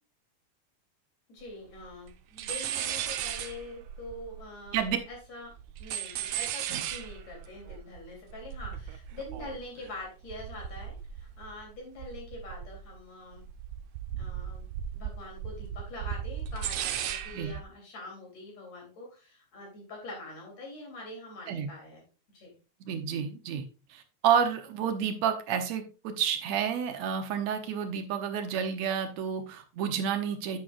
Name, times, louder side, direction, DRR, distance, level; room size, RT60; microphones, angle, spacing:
voice 1, 1.3-4.8 5.1-5.5 5.8-13.4 14.2-22.0 22.3-22.6, left 2 dB, 60° left, 0 dB, 4.4 m, -44 dB
sound 1, 1.4-1.5 1.7-2.1 2.4-5.2 5.4-11.7 12.0-13.0 13.3-17.6, right 10 dB, 90° right, 2.1 m, -37 dB
voice 2, 22.9-23.6 23.9-30.6, right 8 dB, 70° right, 7 dB, 2.2 m, -30 dB
8.7 x 7.8 x 2.5 m, 0.33 s
omnidirectional pair, 3.3 m